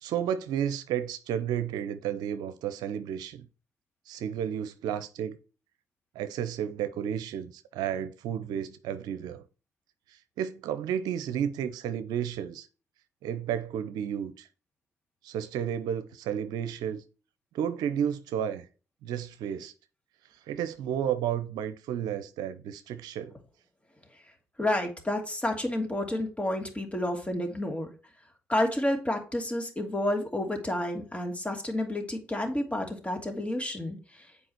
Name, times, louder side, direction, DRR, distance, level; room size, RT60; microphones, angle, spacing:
voice 1, 0.0-3.5 4.1-5.4 6.1-9.4 10.4-12.7 13.2-14.5 15.2-17.0 17.5-18.7 19.0-19.7 20.5-23.3, right 9 dB, 80° right, 0.6 m, -32 dB
voice 2, 24.6-27.9 28.5-34.3, left 1 dB, 20° left, 2.7 m, -30 dB
7.8 x 4.8 x 4.4 m
hypercardioid pair, 45°, 7 cm